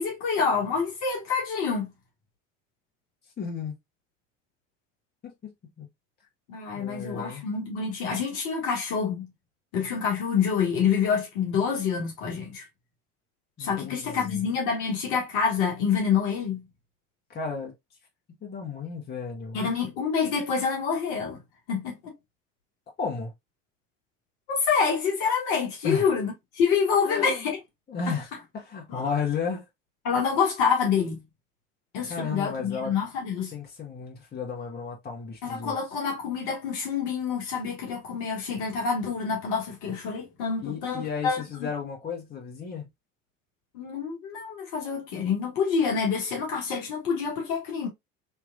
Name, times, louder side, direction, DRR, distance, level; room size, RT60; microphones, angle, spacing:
voice 1, 0.0-1.9 6.5-9.3 9.7-12.6 13.6-16.6 19.5-21.4 21.7-22.1 24.5-27.6 28.9-29.0 30.0-31.2 31.9-33.5 35.4-41.7 43.7-47.9, left 6 dB, 60° left, 1.4 m, -27 dB
voice 2, 3.4-3.8 5.2-5.9 6.7-7.5 13.6-14.5 17.3-17.7 18.4-19.7 23.0-23.3 25.8-26.1 27.0-27.5 27.9-29.7 32.1-32.9 33.5-35.7 40.6-42.9, left 5 dB, 25° left, 1.4 m, -33 dB
3.4 x 3.0 x 2.5 m
figure-of-eight pair, 65°, 37 cm